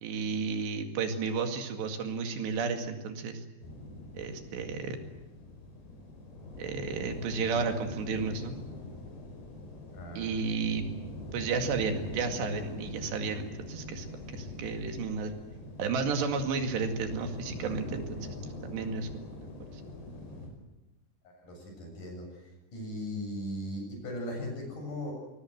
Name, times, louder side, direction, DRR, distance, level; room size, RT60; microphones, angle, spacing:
voice 1, 0.0-3.4 4.2-5.0 6.6-8.6 10.2-10.8 11.3-15.3 15.8-18.4 18.6-19.8, right 5 dB, 90° right, 5 dB, 4.4 m, -32 dB
sound 1, 3.6-20.5, left 2 dB, 75° left, 7.3 m, -43 dB
voice 2, 9.9-10.3 10.9-11.0 21.2-25.1, left 1 dB, 50° left, 2 dB, 8.6 m, -38 dB
25.0 x 20.5 x 8.0 m, 1.0 s
omnidirectional pair, 4.8 m